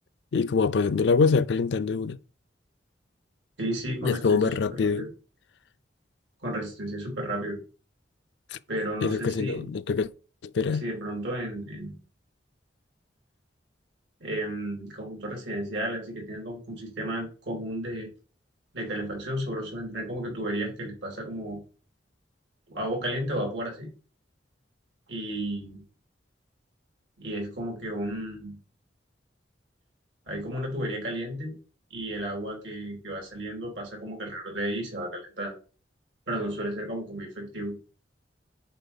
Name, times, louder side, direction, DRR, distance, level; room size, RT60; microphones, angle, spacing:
voice 1, 0.3-2.2 4.0-5.1 8.5-8.6 9.0-10.1 10.5-10.8, left 5 dB, 75° left, 0.4 m, -24 dB
voice 2, 3.6-5.1 6.4-7.6 8.7-9.7 10.8-12.0 14.2-18.1 18.7-21.6 22.7-23.9 25.1-25.8 27.2-28.6 30.3-31.5 31.9-35.5 36.3-37.8, right 1 dB, 90° right, 2.9 m, -33 dB
6.8 x 4.4 x 4.0 m
head